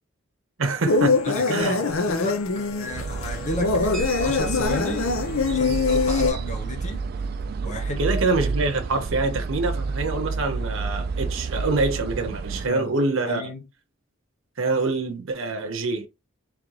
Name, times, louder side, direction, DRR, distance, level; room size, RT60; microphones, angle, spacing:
voice 1, 0.6-1.8 7.6-13.4 14.6-16.1, right 3 dB, 80° right, 0.8 m, -25 dB
sound 1, 0.9-6.3, left 4 dB, 90° left, 0.7 m, -23 dB
voice 2, 1.2-5.1 5.5-7.1 7.6-8.0 12.6-12.9 13.2-13.6, left 1 dB, 35° left, 0.9 m, -32 dB
sound 2, 2.9-12.7, right 4 dB, 50° right, 0.3 m, -30 dB
sound 3, 3.9-12.4, equal, 5° left, 1.4 m, -46 dB
3.6 x 3.2 x 3.2 m
head